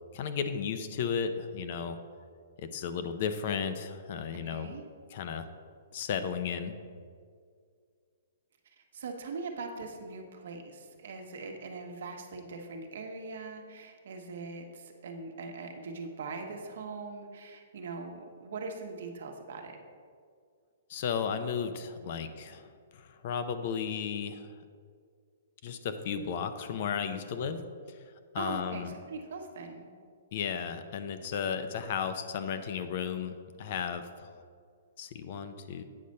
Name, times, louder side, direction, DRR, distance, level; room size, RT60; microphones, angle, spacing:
voice 1, 0.1-2.0 2.6-4.8 5.1-5.5 5.9-6.7 20.9-24.5 25.6-28.0 28.3-28.9 30.3-34.3 35.0-35.8, left 7 dB, 45° left, 9 dB, 0.6 m, -34 dB
voice 2, 4.4-4.8 8.8-19.8 28.4-29.9, right 4 dB, 70° right, 3 dB, 1.2 m, -41 dB
8.5 x 4.2 x 6.4 m, 2.1 s
hypercardioid pair, 155°, 0 cm